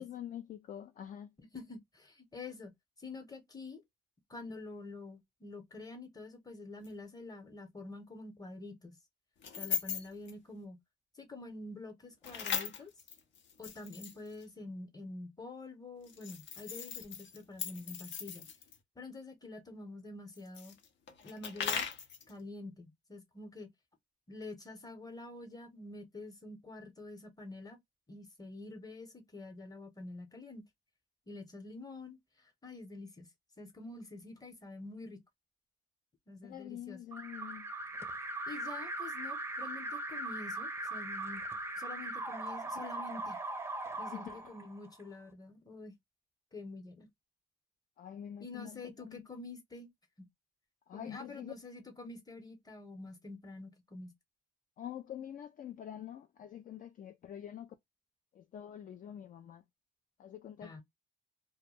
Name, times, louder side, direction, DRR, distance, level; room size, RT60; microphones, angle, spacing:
voice 1, 0.0-1.3 36.4-37.7 44.1-44.4 48.0-49.3 50.9-51.5 54.8-57.7 58.3-59.6 60.2-60.8, left 10 dB, 45° left, 0.4 m, -46 dB
voice 2, 1.4-2.7 3.0-3.8 4.3-9.0 9.6-10.8 11.2-12.9 13.6-18.5 19.0-20.7 21.2-21.9 22.3-23.7 24.3-27.8 28.1-30.6 31.3-32.2 32.6-33.3 33.6-35.2 36.3-37.0 38.5-41.4 41.8-43.4 44.0-45.9 46.5-47.1 48.4-49.9 50.2-50.3 50.9-54.1 60.6-60.8, left 2 dB, 20° left, 0.9 m, -47 dB
sound 1, 6.8-6.9 9.4-10.3 12.2-14.4 16.0-18.8 20.4-22.3, left 7 dB, 70° left, 0.8 m, -39 dB
Alarm, 37.1-45.0, right 2 dB, 10° right, 0.5 m, -40 dB
2.2 x 2.1 x 3.1 m
cardioid pair, 90°, 20 cm